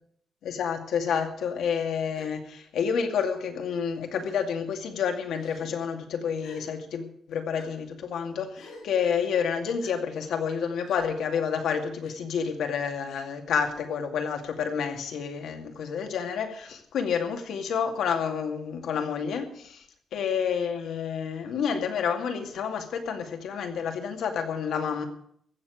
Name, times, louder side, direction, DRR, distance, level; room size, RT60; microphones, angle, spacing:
voice 1, 0.4-19.8 20.1-25.0, left 7 dB, 80° left, 5 dB, 2.3 m, -29 dB
Gasp, 2.1-2.3 3.2-3.3 4.1-4.5 5.3-5.7 6.4-6.7 7.5-7.7 8.5-8.9 9.8-10.0 10.8-11.0 12.0-12.2 13.0-13.3, left 3 dB, 65° left, 5.5 m, -48 dB
15.0 x 7.0 x 9.4 m, 0.66 s
wide cardioid pair, 165°, 0 cm